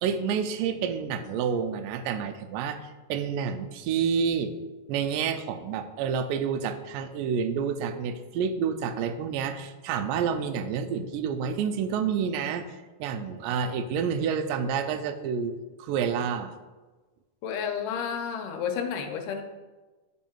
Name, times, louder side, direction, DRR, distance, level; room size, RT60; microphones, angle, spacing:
voice 1, 0.0-4.5 4.9-12.7 13.0-16.5, right 7 dB, 90° right, 9 dB, 2.3 m, -29 dB
voice 2, 17.4-19.4, left 7 dB, 85° left, 5 dB, 2.2 m, -31 dB
10.5 x 3.6 x 4.4 m, 1.2 s
omnidirectional pair, 3.8 m